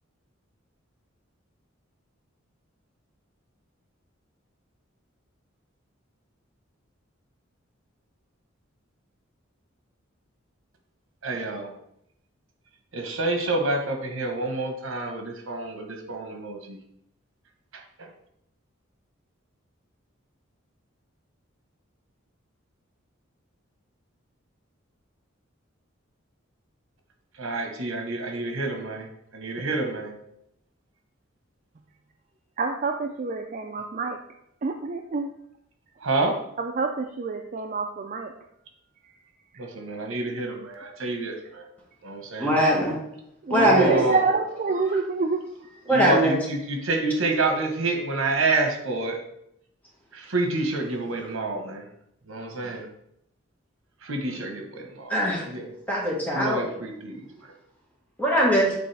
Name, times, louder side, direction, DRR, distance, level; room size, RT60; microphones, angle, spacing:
voice 1, 11.2-11.7 12.9-16.8 17.7-18.1 27.4-29.1 29.3-30.3 36.0-36.4 39.6-41.6 42.0-42.6 43.5-44.2 45.9-49.2 50.1-51.8 52.3-52.9 54.0-55.7 56.3-57.5, right 2 dB, 75° right, 3 dB, 1.2 m, -28 dB
voice 2, 32.6-34.2 34.6-35.3 36.6-38.3 43.4-45.8, right 4 dB, 40° right, 4 dB, 0.4 m, -27 dB
voice 3, 42.4-43.0 43.5-44.0 44.9-45.0 45.9-46.4 55.1-55.4 55.9-56.6 58.2-58.7, equal, 10° left, -4 dB, 1.7 m, -21 dB
8.5 x 3.9 x 3.4 m, 0.76 s
head